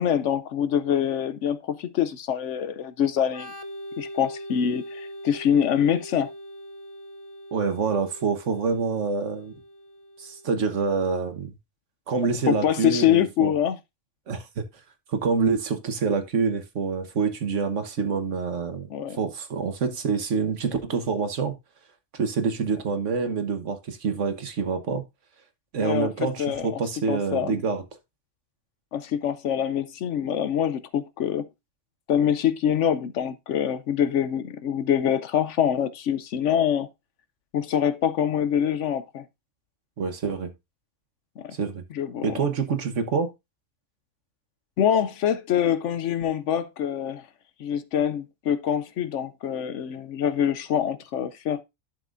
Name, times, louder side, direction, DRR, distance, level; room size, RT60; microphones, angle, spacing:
voice 1, 0.0-3.5 4.0-6.3 12.5-13.8 18.9-19.2 25.8-26.8 27.1-27.6 28.9-31.5 32.1-36.9 37.5-39.2 41.4-41.5 41.9-42.4 44.8-47.3 47.6-51.6, left 9 dB, 65° left, 0.9 m, -25 dB
Organ, 3.3-10.8, equal, 35° left, 0.5 m, -42 dB
voice 2, 7.5-9.5 10.2-11.5 12.1-13.5 14.3-14.6 15.1-18.9 19.2-21.5 22.1-25.0 25.7-27.8 40.0-40.5 41.5-41.8 42.2-43.3, right 5 dB, 60° right, 1.4 m, -26 dB
11.5 x 6.7 x 2.5 m
omnidirectional pair, 1.4 m